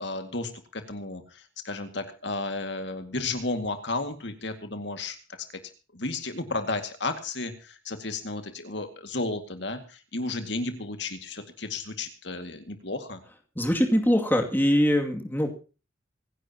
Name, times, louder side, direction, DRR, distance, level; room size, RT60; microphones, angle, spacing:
voice 1, 0.0-5.2 5.5-5.6 5.9-13.2, left 2 dB, 60° left, 7 dB, 2.1 m, -33 dB
voice 2, 13.6-15.7, equal, 10° left, 3 dB, 2.4 m, -23 dB
25.5 x 11.0 x 2.9 m, 0.35 s
head